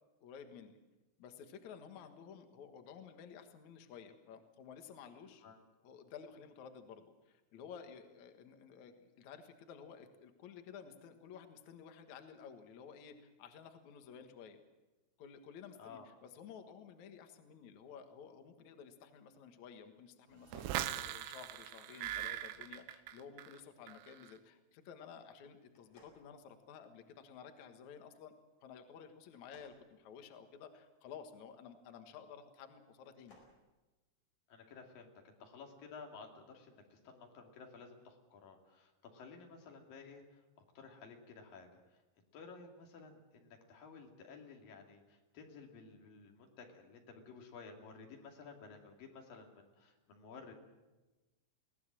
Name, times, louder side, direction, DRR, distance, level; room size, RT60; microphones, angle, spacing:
voice 1, 0.2-0.8 1.2-5.4 5.8-14.6 15.2-28.3 28.6-33.4, left 7 dB, 80° left, 7 dB, 1.6 m, -53 dB
sound 1, 20.5-23.6 23.9-24.3, right 12 dB, 85° right, 3.6 m, -41 dB
sound 2, 25.7-27.1 29.3-30.8 32.9-33.6, left 1 dB, 35° left, 5.8 m, -65 dB
voice 2, 34.5-40.4 40.8-42.0 42.3-50.5, left 5 dB, 50° left, 2 dB, 3.8 m, -54 dB
22.5 x 18.0 x 7.6 m, 1.1 s
omnidirectional pair, 5.8 m